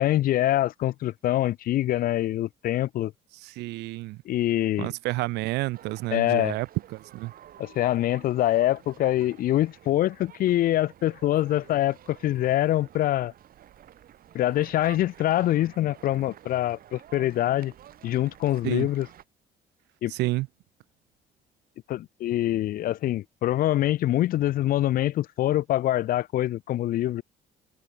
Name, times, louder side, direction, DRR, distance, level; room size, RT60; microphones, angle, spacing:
voice 1, 0.0-3.1 4.3-4.9 6.1-6.6 7.6-13.3 14.3-17.7 18.0-19.1 20.0-20.1 21.9-27.2, left 14 dB, 60° left, 0.5 m, -25 dB
voice 2, 3.4-4.2 4.8-6.7 6.9-7.3 18.6-18.9 20.1-20.5, right 20 dB, 90° right, 1.4 m, -30 dB
sound 1, 5.7-19.2, right 11 dB, 60° right, 7.7 m, -51 dB
cardioid pair, 110°, 17 cm